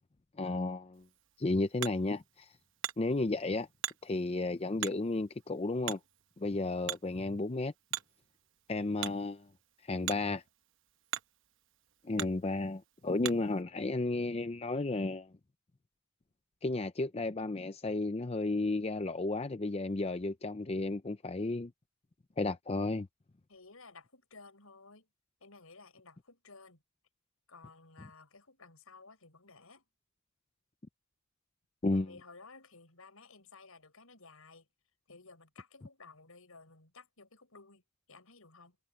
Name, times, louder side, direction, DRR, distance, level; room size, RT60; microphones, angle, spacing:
voice 1, 0.4-1.0 1.4-2.5 3.0-3.7 4.0-6.0 6.4-7.7 8.7-9.5 9.8-10.4 12.0-15.3 16.6-21.7 22.4-23.1 31.8-32.1, left 2 dB, 30° left, 0.5 m, -33 dB
Hammer, 0.9-13.6, right 11 dB, 60° right, 1.0 m, -45 dB
voice 2, 23.5-25.1 25.4-26.8 27.5-29.8 31.9-34.7 35.1-37.8 38.1-38.8, left 4 dB, 80° left, 5.6 m, -55 dB
head